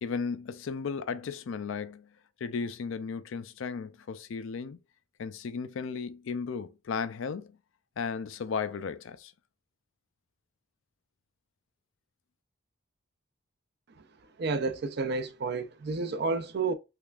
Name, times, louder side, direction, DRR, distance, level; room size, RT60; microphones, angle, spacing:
voice 1, 0.0-2.1 2.4-4.8 5.2-7.5 8.0-9.3, left 5 dB, 70° left, 0.4 m, -35 dB
voice 2, 14.4-16.7, right 4 dB, 50° right, 0.4 m, -30 dB
3.5 x 3.3 x 2.3 m
head